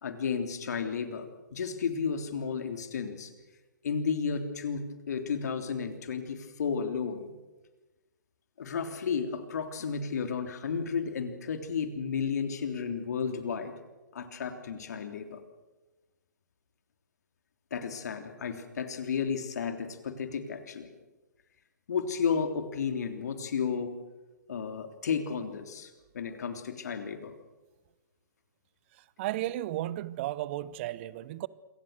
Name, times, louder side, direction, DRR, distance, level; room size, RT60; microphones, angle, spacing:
voice 1, 0.0-3.3 3.8-7.3 8.6-13.7 14.1-15.4 17.7-20.9 21.9-23.9 24.5-27.3, left 6 dB, 60° left, 3.3 m, -33 dB
voice 2, 29.2-31.5, right 14 dB, 40° right, 1.0 m, -34 dB
27.0 x 24.0 x 6.7 m
figure-of-eight pair, 120°, 10 cm